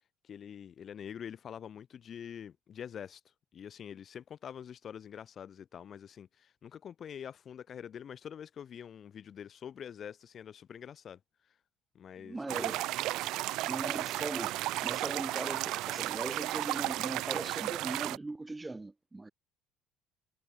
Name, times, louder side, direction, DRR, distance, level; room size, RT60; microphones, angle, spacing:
voice 1, 0.2-3.2 3.5-11.2 11.9-12.7, left 8 dB, 45° left, 1.4 m, -45 dB
voice 2, 12.2-12.9 13.7-19.3, right 2 dB, 15° right, 2.6 m, -39 dB
sound 1, 12.5-18.2, right 17 dB, 70° right, 0.7 m, -34 dB
supercardioid pair, 85°, 0 cm